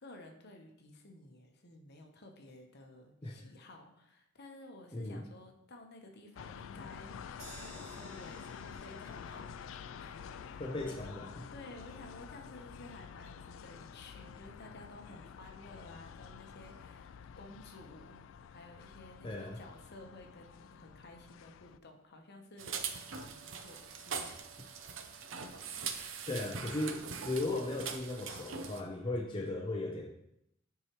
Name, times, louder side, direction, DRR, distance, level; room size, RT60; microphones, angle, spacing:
voice 1, 0.0-11.1 11.5-17.1 17.4-18.2 18.5-24.9 25.7-26.5, left 2 dB, 55° left, 3 dB, 1.0 m, -54 dB
sound 1, 6.4-21.8, left 7 dB, 70° left, 0.3 m, -49 dB
sound 2, 7.4-19.6 20.0-20.1 20.4-20.5, right 2 dB, 55° right, 2.6 m, -60 dB
voice 2, 10.6-11.4 19.2-19.6 26.3-30.1, left 2 dB, 25° left, 0 dB, 0.6 m, -37 dB
sound 3, 22.6-28.8, right 6 dB, 70° right, 0.6 m, -42 dB
9.5 x 4.8 x 3.1 m, 0.79 s
head